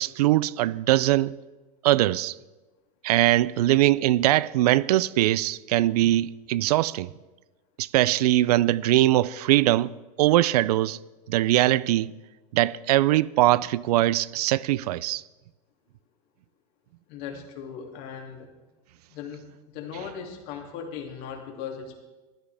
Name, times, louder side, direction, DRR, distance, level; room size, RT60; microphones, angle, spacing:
voice 1, 0.0-1.3 1.8-2.3 3.0-7.1 7.8-9.9 10.2-11.0 11.3-12.2 12.5-15.2, right 15 dB, 80° right, 0.4 m, -21 dB
voice 2, 17.1-18.5 19.1-19.4 19.7-22.0, left 7 dB, 55° left, 2.6 m, -38 dB
15.5 x 12.5 x 3.4 m
supercardioid pair, 120°, 19 cm